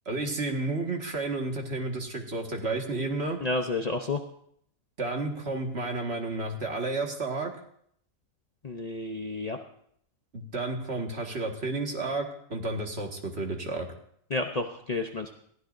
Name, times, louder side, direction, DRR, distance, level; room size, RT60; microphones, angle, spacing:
voice 1, 0.1-3.4 5.0-7.5 10.3-13.9, right 2 dB, 50° right, 1 dB, 2.1 m, -31 dB
voice 2, 3.4-4.2 8.6-9.6 14.3-15.3, left 2 dB, 35° left, 3 dB, 0.8 m, -30 dB
21.5 x 15.5 x 2.6 m, 0.68 s
omnidirectional pair, 1.4 m